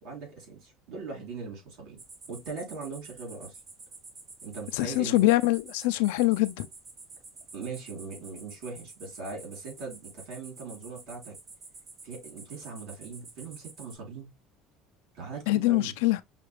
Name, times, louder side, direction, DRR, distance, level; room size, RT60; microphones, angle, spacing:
voice 1, 0.0-2.0 2.3-3.6 4.4-5.3 7.5-11.4 12.0-14.3 15.1-15.9, right 4 dB, 65° right, 3.0 m, -40 dB
sound 1, 2.0-14.0, right 3 dB, 30° right, 1.0 m, -49 dB
voice 2, 4.8-6.7 15.5-16.2, left 17 dB, 90° left, 0.4 m, -24 dB
5.9 x 2.4 x 3.2 m
cardioid pair, 165°, 0 cm